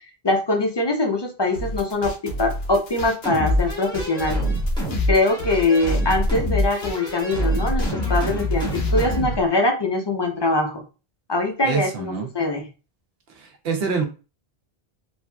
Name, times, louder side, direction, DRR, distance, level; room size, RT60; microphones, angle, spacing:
voice 1, 0.2-4.4 5.1-10.8 11.3-12.6, left 2 dB, 40° left, 2 dB, 0.4 m, -22 dB
sound 1, 1.5-9.2, right 1 dB, 80° left, 0.9 m, -32 dB
sound 2, 3.2-9.4, left 1 dB, 5° left, 0.7 m, -25 dB
voice 2, 11.6-12.3 13.3-14.0, right 5 dB, 75° right, 3 dB, 0.9 m, -26 dB
3.2 x 2.5 x 2.2 m, 0.32 s
omnidirectional pair, 1.0 m